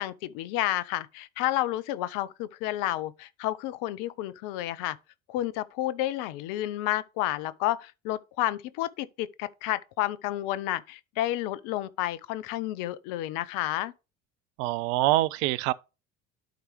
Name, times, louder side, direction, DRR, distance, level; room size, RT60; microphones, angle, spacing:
voice 1, 0.0-5.0 5.3-13.9, left 15 dB, 55° left, 0.6 m, -30 dB
voice 2, 14.6-15.7, right 17 dB, 55° right, 0.5 m, -25 dB
11.5 x 4.6 x 3.0 m
figure-of-eight pair, 60°, 41 cm